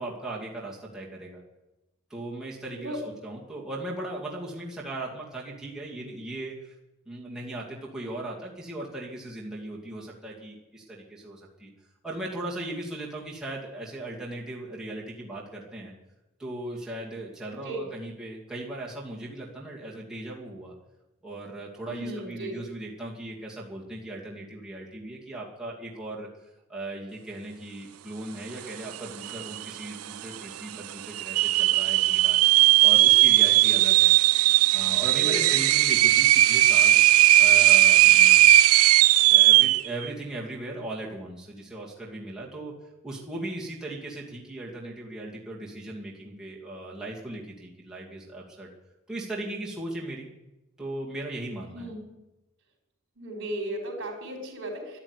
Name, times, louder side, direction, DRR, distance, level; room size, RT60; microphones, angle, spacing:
voice 1, 0.0-1.4 2.1-6.8 7.1-11.7 12.0-15.9 16.4-20.7 21.2-34.1 34.7-38.5 38.9-42.7 43.0-48.7 49.1-50.3 50.8-51.9, right 1 dB, 5° right, -5 dB, 2.4 m, -38 dB
voice 2, 2.7-3.0 17.5-17.8 21.9-22.6 33.4-33.7 35.1-35.5 51.6-52.0 53.2-55.0, right 1 dB, 55° right, 4 dB, 4.9 m, -36 dB
sound 1, 29.0-29.1 29.3-29.8 30.3-30.4 31.2-39.9, right 15 dB, 80° right, 0.4 m, -18 dB
12.5 x 11.5 x 9.8 m, 1.0 s
head